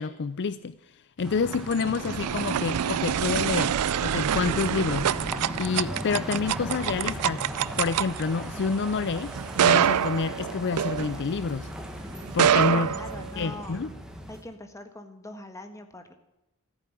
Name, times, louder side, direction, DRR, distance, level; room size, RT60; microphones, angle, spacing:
voice 1, 0.0-5.1 5.6-9.3 9.6-11.7 12.3-13.0 13.4-13.9, left 5 dB, 50° left, 0.5 m, -28 dB
sound 1, 1.2-14.4, equal, 5° right, 1.6 m, -38 dB
sound 2, 1.3-11.6 12.2-13.7, right 9 dB, 90° right, 0.4 m, -26 dB
sound 3, 1.5-3.0 6.9-7.0 7.8-7.9 10.0-10.1 10.7-10.9 11.1-11.6 11.9-12.1 13.1-13.5 14.3-14.5, right 2 dB, 20° right, 4.0 m, -52 dB
voice 2, 12.5-13.8 14.3-16.1, left 2 dB, 15° left, 1.5 m, -42 dB
14.5 x 8.6 x 9.9 m
head